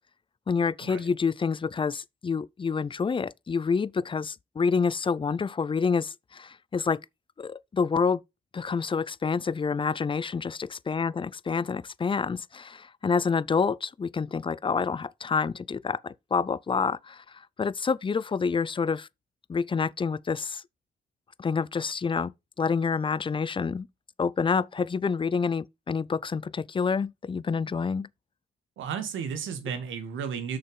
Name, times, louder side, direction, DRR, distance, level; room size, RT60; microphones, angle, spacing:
voice 1, 0.5-7.0 7.4-8.2 8.5-19.1 19.5-20.6 21.4-23.9 24.2-28.1, left 5 dB, 25° left, 0.4 m, -28 dB
voice 2, 28.8-30.6, right 7 dB, 85° right, 1.7 m, -33 dB
6.6 x 5.8 x 5.3 m
supercardioid pair, 60°, 20 cm